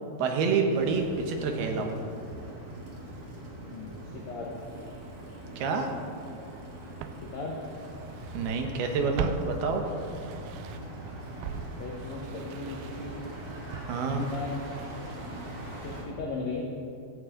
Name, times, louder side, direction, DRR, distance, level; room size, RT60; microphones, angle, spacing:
voice 1, 0.2-2.0 5.6-5.9 8.3-9.8 13.9-14.3, right 4 dB, 70° right, 4 dB, 2.8 m, -28 dB
sound 1, 0.7-16.0, right 1 dB, 40° right, 2.5 m, -42 dB
voice 2, 3.6-4.5 7.2-7.6 11.7-13.2 14.1-14.6 15.0-15.3 15.8-16.6, left 4 dB, 85° left, -1 dB, 1.5 m, -37 dB
Walk footsteps, 6.3-6.4 7.0-8.5 8.8-11.0 11.4-15.5 15.7-15.8, right 9 dB, 90° right, 2.2 m, -41 dB
16.0 x 15.0 x 3.8 m, 2.6 s
omnidirectional pair, 5.1 m